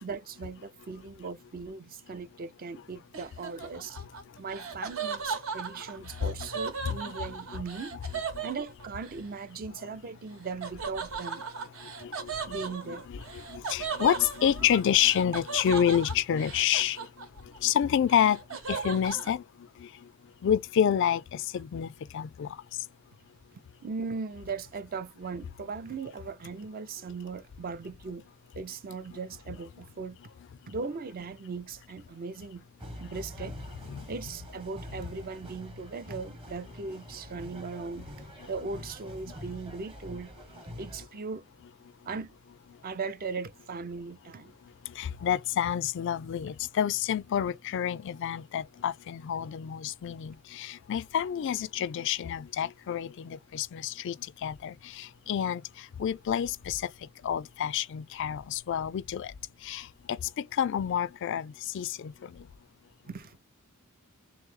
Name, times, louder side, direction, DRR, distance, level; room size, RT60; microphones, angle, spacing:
voice 1, 0.0-4.0 4.4-8.0 8.4-11.4 12.5-13.0 18.7-18.8 23.8-28.2 28.5-30.2 30.7-32.6 33.0-33.6 34.1-38.1 38.5-40.3 40.8-41.4 42.1-42.3 42.8-44.5 63.0-63.4, right 4 dB, 45° right, 0.5 m, -38 dB
Laughter, 3.1-9.2 10.6-17.6 17.9-19.3, right 5 dB, 70° right, 1.1 m, -37 dB
voice 2, 12.0-12.5 12.9-17.1 17.6-18.4 18.7-19.4 19.8-19.9 20.4-22.5 33.9-34.0 44.9-54.2 54.4-56.9 57.2-59.3 59.6-62.3, left 9 dB, 60° left, 0.3 m, -29 dB
sound 1, 32.8-41.1, equal, 25° right, 1.0 m, -45 dB
3.3 x 3.1 x 3.6 m
head